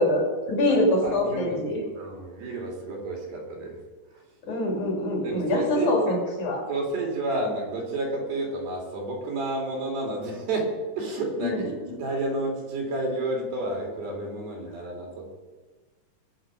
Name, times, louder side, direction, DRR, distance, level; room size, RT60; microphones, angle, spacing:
voice 1, 0.0-1.8 4.4-6.7 11.4-11.7, left 1 dB, 50° left, -1 dB, 4.1 m, -24 dB
voice 2, 0.7-1.6 2.0-3.8 4.1-4.2 5.2-5.9 6.7-15.3, right 2 dB, 80° right, 0 dB, 4.5 m, -31 dB
21.0 x 7.1 x 5.2 m, 1.3 s
omnidirectional pair, 4.2 m